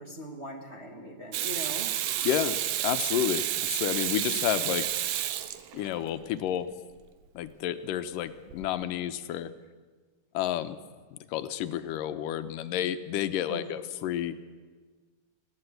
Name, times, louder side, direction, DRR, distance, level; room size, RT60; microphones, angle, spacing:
voice 1, 0.0-1.9 13.5-13.6, equal, 25° right, 0 dB, 1.5 m, -40 dB
Water tap faucet / Sink (filling or washing), 1.3-6.1 8.5-8.7, right 12 dB, 85° right, 2.6 m, -30 dB
voice 2, 2.2-4.9 5.7-6.7 7.3-9.5 10.3-10.8 11.1-14.3, left 11 dB, 90° left, 11 dB, 2.5 m, -30 dB
20.5 x 16.0 x 8.1 m, 1.5 s
omnidirectional pair, 3.8 m